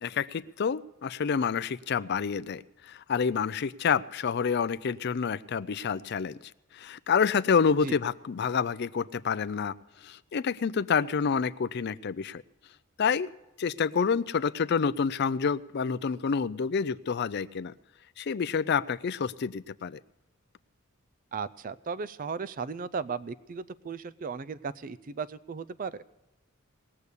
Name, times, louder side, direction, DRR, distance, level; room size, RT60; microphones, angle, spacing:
voice 1, 0.0-12.4 13.0-13.3 13.6-17.7 18.2-20.0, left 6 dB, 50° left, 16 dB, 0.4 m, -28 dB
voice 2, 21.3-26.0, right 5 dB, 40° right, 17 dB, 0.4 m, -36 dB
19.5 x 6.8 x 8.1 m, 0.96 s
head